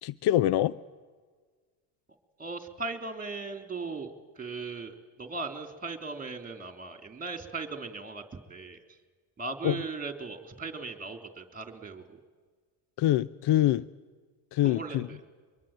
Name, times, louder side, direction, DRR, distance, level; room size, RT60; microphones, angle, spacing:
voice 1, 0.0-0.7 9.6-9.8 13.0-13.8 14.5-15.1, left 13 dB, 55° left, 18 dB, 0.7 m, -25 dB
voice 2, 2.4-4.1 4.3-8.8 9.4-12.2 14.6-15.2, right 4 dB, 20° right, 6 dB, 3.5 m, -38 dB
23.5 x 23.0 x 9.0 m, 1.5 s
supercardioid pair, 80°, 48 cm